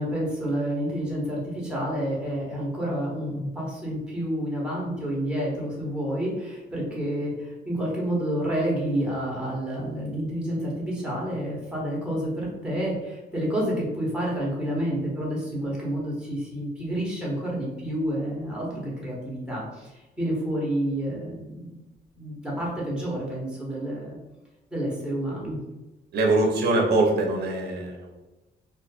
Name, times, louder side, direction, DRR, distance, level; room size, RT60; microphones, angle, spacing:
voice 1, 0.0-21.8 22.2-24.2 24.7-25.6, equal, 5° right, -5 dB, 1.1 m, -29 dB
voice 2, 26.1-28.2, right 2 dB, 65° right, 0 dB, 0.7 m, -23 dB
2.5 x 2.4 x 2.3 m, 1.1 s
cardioid pair, 100°, 18 cm